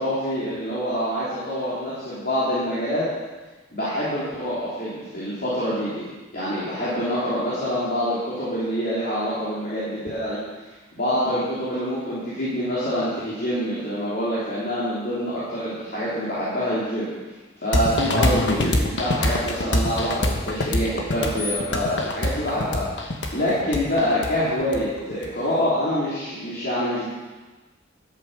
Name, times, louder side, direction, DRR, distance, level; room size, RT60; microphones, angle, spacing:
voice 1, 0.0-3.1 3.7-6.0 6.3-10.4 10.9-17.1 17.6-27.1, equal, 50° left, -10 dB, 3.5 m, -26 dB
sound 1, 17.7-25.3, left 1 dB, 70° left, 1.4 m, -24 dB
12.0 x 8.6 x 6.9 m, 1.2 s
head